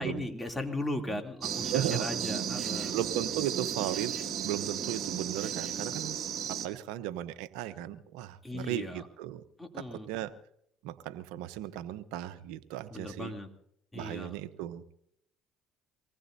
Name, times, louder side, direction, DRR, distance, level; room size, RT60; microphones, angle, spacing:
voice 1, 0.0-2.9 8.4-9.1 9.6-10.1 12.9-13.5 13.9-14.3, left 1 dB, 10° left, 3 dB, 2.9 m, -37 dB
sound 1, 1.4-6.7, right 8 dB, 55° right, 2.4 m, -34 dB
voice 2, 1.7-2.1 2.9-4.1 4.4-6.2 6.5-9.4 9.7-10.3 10.8-13.3 13.9-14.8, right 13 dB, 80° right, 12 dB, 0.8 m, -36 dB
24.5 x 19.0 x 2.7 m, 0.74 s
supercardioid pair, 75°, 0 cm